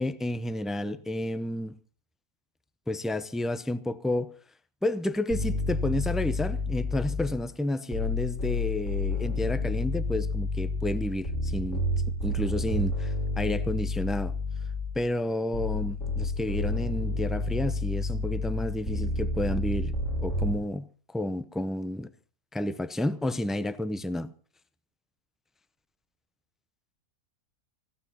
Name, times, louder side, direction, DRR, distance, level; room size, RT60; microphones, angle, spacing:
voice 1, 0.0-1.7 2.9-4.3 4.8-11.8 12.2-14.3 14.9-19.9 20.2-22.1 22.5-24.3, left 1 dB, ahead, 0.5 m, -31 dB
sound 1, 5.3-7.5 7.9-15.0 15.5-20.5, left 2 dB, 60° left, 5.0 m, -30 dB
19.5 x 16.5 x 4.2 m
omnidirectional pair, 1.4 m